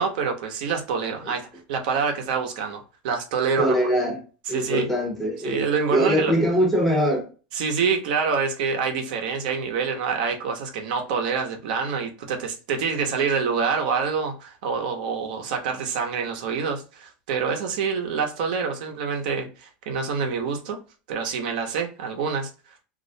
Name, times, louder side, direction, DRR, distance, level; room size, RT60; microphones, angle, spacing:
voice 1, 0.0-3.8 4.5-4.9 5.4-6.4 7.5-20.8 21.1-22.5, right 5 dB, 70° right, 0.6 m, -26 dB
voice 2, 3.6-4.2 4.5-7.3, equal, 5° left, 0.7 m, -22 dB
2.3 x 2.0 x 2.6 m
supercardioid pair, 140°, 5 cm